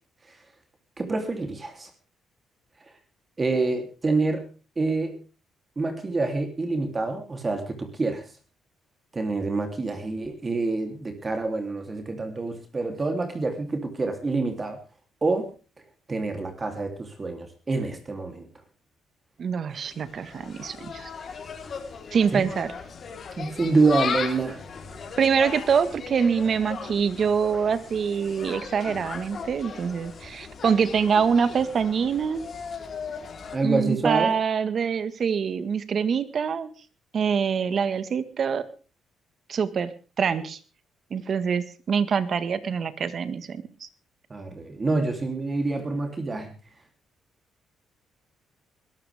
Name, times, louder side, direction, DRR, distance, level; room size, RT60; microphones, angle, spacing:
voice 1, 1.0-1.9 3.4-4.5 4.8-5.2 5.8-8.2 9.1-14.8 15.2-15.5 16.1-18.5 22.3-22.5 23.4-24.6 33.5-34.3 44.3-46.5, right 3 dB, 30° right, 5 dB, 3.2 m, -27 dB
voice 2, 19.4-21.1 22.1-22.7 25.2-32.5 33.6-36.7 37.1-38.7 39.5-40.6 41.1-43.9, right 6 dB, 50° right, 13 dB, 1.6 m, -25 dB
Insect, 19.7-33.6, left 5 dB, 50° left, 3.8 m, -37 dB
21.5 x 13.0 x 3.6 m, 0.35 s
cardioid pair, 90°, 0 cm